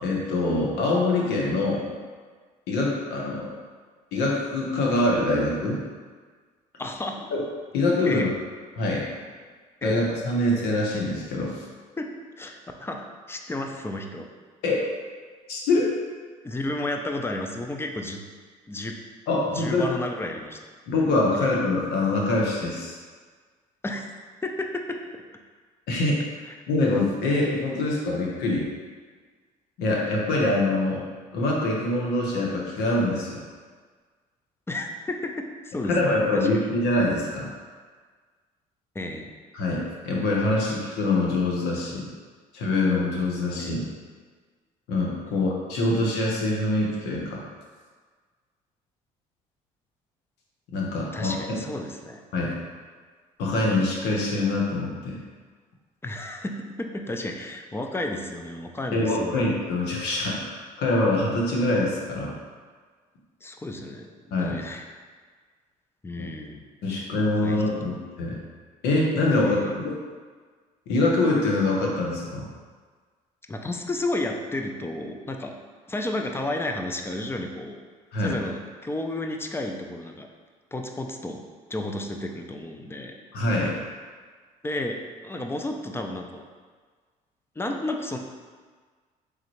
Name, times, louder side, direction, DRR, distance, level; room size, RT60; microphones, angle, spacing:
voice 1, 0.0-1.8 2.7-3.5 4.1-5.8 7.3-7.4 7.7-8.3 8.8-9.1 9.8-11.6 14.6-14.8 15.5-15.9 19.3-19.9 20.9-23.0 25.9-26.2 26.7-28.7 29.8-31.0 31.3-33.4 35.9-37.5 39.5-42.1 42.5-43.9 44.9-47.4 50.7-51.3 52.3-52.5 53.4-55.2 58.9-62.3 64.3-64.6 66.8-68.4 68.8-69.9 70.9-72.4 78.1-78.4 83.3-83.8, left 2 dB, 75° left, -2 dB, 0.9 m, -24 dB
voice 2, 6.8-7.3 8.0-8.3 9.8-10.0 12.0-12.1 12.4-14.3 16.4-18.2 18.7-19.0 19.5-20.6 21.3-21.5 23.8-24.0 24.4-25.2 26.5-26.6 34.7-36.7 38.9-39.3 43.6-43.8 51.1-52.2 56.0-59.5 63.4-65.0 66.0-66.6 67.1-67.6 69.4-69.8 73.5-75.5 75.9-77.8 78.2-80.3 80.7-81.4 81.7-83.2 84.6-86.4 87.6-88.2, left 2 dB, 15° left, 3 dB, 0.5 m, -32 dB
3.6 x 3.2 x 3.0 m, 1.5 s
supercardioid pair, 65°, 17 cm